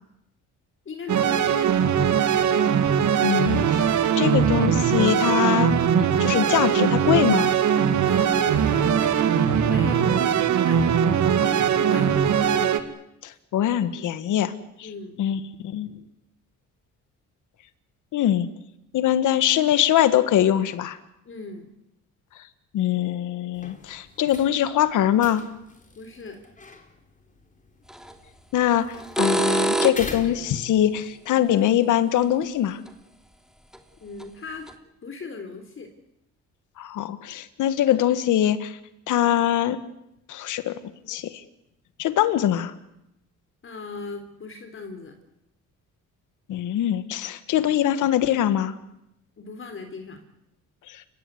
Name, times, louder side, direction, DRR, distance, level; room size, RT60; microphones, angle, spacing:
voice 1, 0.9-1.8 8.0-8.9 9.7-12.8 14.8-15.2 21.3-21.7 26.0-26.4 34.0-34.7 35.0-35.9 43.6-45.1 49.4-50.2, left 4 dB, 45° left, 6 dB, 3.7 m, -38 dB
sound 1, 1.1-12.8, right 8 dB, 70° right, 2.2 m, -21 dB
voice 2, 3.2-5.7 6.0-7.5 13.2-14.5 14.8-14.9 15.2-15.9 18.1-18.5 18.9-21.0 22.7-25.4 28.5-32.8 36.8-38.8 39.1-39.8 40.3-40.7 41.1-41.3 42.0-42.7 46.5-48.7 50.9-51.0, left 11 dB, 80° left, 13 dB, 1.8 m, -23 dB
sound 2, 23.5-31.0, left 3 dB, 25° left, 4.2 m, -44 dB
sound 3, 27.9-28.1 28.9-30.2 32.9-33.0 33.7-33.8 34.2-34.3 34.7-34.8, right 1 dB, ahead, 2.8 m, -24 dB
29.5 x 16.5 x 9.6 m, 0.84 s
cardioid pair, 90°, 30 cm